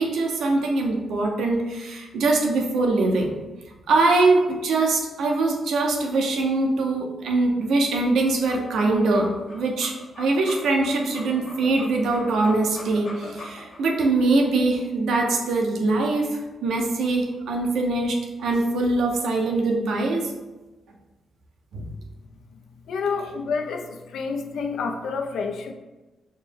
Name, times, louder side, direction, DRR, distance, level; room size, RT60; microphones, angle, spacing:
voice 1, 0.0-3.3 3.9-20.3 21.7-21.9, right 2 dB, 85° right, 1 dB, 0.6 m, -23 dB
sound 1, 8.3-13.8, left 2 dB, 55° left, 0.8 m, -41 dB
voice 2, 22.9-25.7, left 5 dB, 85° left, 5 dB, 0.4 m, -28 dB
4.2 x 2.0 x 3.4 m, 1.1 s
cardioid pair, 70°, 0 cm